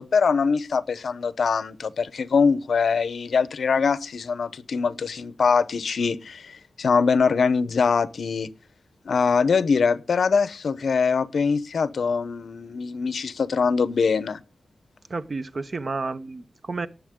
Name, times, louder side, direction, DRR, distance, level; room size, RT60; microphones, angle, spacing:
voice 1, 0.0-8.5 9.0-14.4, left 5 dB, 70° left, 0.8 m, -23 dB
voice 2, 15.1-16.9, right 3 dB, 40° right, 0.8 m, -31 dB
18.5 x 7.4 x 3.7 m
wide cardioid pair, 135°, 0 cm